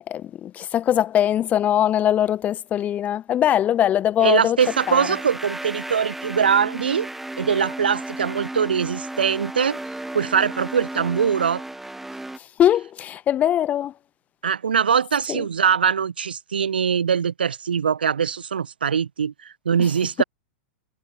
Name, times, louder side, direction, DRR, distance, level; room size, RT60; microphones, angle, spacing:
voice 1, 0.1-4.6 4.9-5.1 12.6-13.9 15.3-15.4, left 11 dB, 30° left, 2.7 m, -21 dB
voice 2, 4.2-7.1 7.4-9.8 10.1-11.6 14.4-20.2, right 7 dB, 75° right, 5.9 m, -22 dB
sound 1, 4.6-12.4, right 1 dB, 5° right, 6.8 m, -34 dB
figure-of-eight pair, 100°, 5 cm